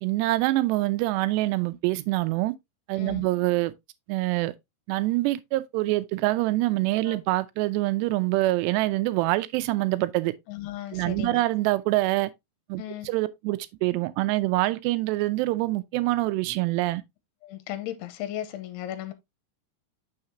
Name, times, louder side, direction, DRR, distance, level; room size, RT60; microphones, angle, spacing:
voice 1, 0.0-2.5 2.9-3.7 4.1-4.5 4.9-10.3 10.9-12.3 12.7-17.0, right 19 dB, 90° right, 2.8 m, -25 dB
voice 2, 3.0-3.3 7.0-7.2 10.5-11.4 12.8-13.1 17.4-19.1, left 12 dB, 80° left, 2.8 m, -36 dB
6.5 x 6.5 x 2.8 m
omnidirectional pair, 4.8 m